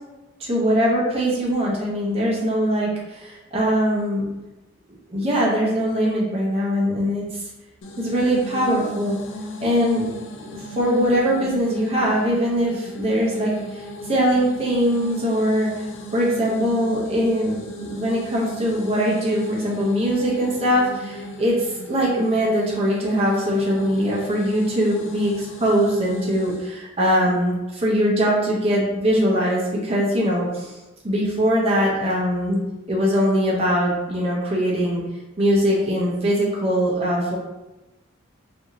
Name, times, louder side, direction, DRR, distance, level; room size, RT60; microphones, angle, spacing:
voice 1, 0.4-4.3 5.1-7.4 8.0-9.1 9.6-15.7 16.1-30.7 31.0-32.6 32.9-35.0 35.4-37.4, equal, 30° right, -4 dB, 0.6 m, -22 dB
sound 1, 7.8-26.7, left 1 dB, 65° left, 0.4 m, -36 dB
2.7 x 2.5 x 2.8 m, 1.0 s
head